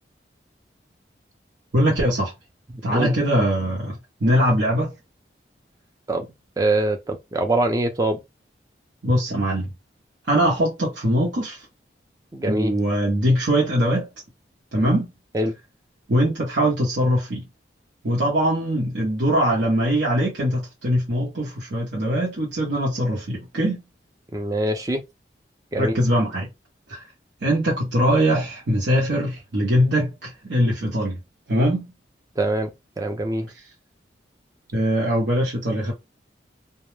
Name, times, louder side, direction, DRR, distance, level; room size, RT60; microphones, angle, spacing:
voice 1, 1.7-2.3 2.8-4.9 9.0-9.7 10.3-11.6 12.5-14.1 14.7-15.1 16.1-17.4 18.0-23.8 25.8-26.5 26.9-27.0 27.4-31.2 31.5-31.9 34.7-35.9, equal, 80° right, 0.8 m, -22 dB
voice 2, 2.7-3.1 6.1-6.3 6.6-8.2 12.3-12.8 15.3-15.5 24.3-25.0 25.7-26.0 32.4-32.7 33.0-33.5, right 1 dB, 20° right, 0.4 m, -23 dB
2.2 x 2.0 x 3.1 m
head